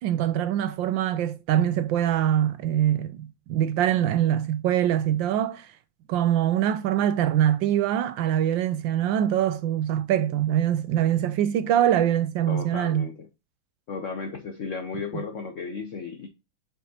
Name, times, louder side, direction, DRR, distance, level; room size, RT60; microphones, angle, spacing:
voice 1, 0.0-5.7 6.1-13.1 15.1-15.2, right 11 dB, 75° right, 1.1 m, -23 dB
voice 2, 12.5-13.3 13.9-16.3, left 5 dB, 75° left, 0.7 m, -34 dB
7.2 x 4.8 x 2.8 m
omnidirectional pair, 2.3 m